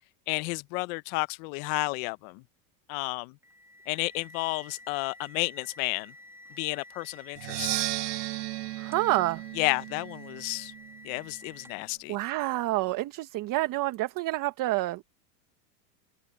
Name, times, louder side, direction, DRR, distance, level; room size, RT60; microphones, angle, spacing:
voice 1, 0.3-2.4 2.9-3.4 3.9-6.1 6.6-7.8 9.6-10.7 11.0-12.2, left 26 dB, 55° left, 1.0 m, -31 dB
sound 1, 3.4-12.0, left 1 dB, 5° right, 3.1 m, -51 dB
Percussion, 7.4-11.1, right 19 dB, 75° right, 1.7 m, -35 dB
voice 2, 8.8-9.4 12.1-15.0, right 18 dB, 40° right, 1.5 m, -28 dB
open air
supercardioid pair, 120°, 48 cm